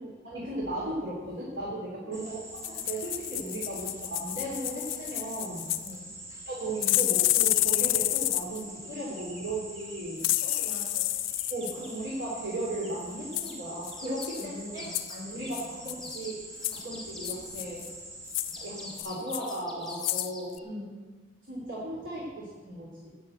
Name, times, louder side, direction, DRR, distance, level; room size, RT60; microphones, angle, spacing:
voice 1, 0.0-5.7 6.5-10.2 11.5-14.9 15.3-16.3 16.7-17.9 18.5-20.6 21.5-23.2, right 1 dB, 65° right, -4 dB, 3.1 m, -36 dB
sound 1, 2.1-19.0, right 1 dB, 15° right, 3.1 m, -45 dB
sound 2, 2.6-5.9 6.8-8.6 10.2-11.7 13.3-13.5 13.8-14.0 14.2-14.5 14.9-15.2 15.5-16.2 16.6-16.8 17.2-17.9 18.3-18.6 19.0-19.6 19.9-20.3 20.6-20.7, left 16 dB, 75° left, 0.4 m, -29 dB
voice 2, 5.8-6.1 10.4-11.1 14.1-15.9 20.6-21.1, left 1 dB, 40° right, -4 dB, 5.7 m, -44 dB
sound 3, 7.1-7.2 7.5-8.0 9.2-10.8 11.4-12.0 12.8-13.0 13.3-17.7 18.4-20.6, left 2 dB, ahead, 2.3 m, -47 dB
16.5 x 6.8 x 7.8 m, 1.3 s
head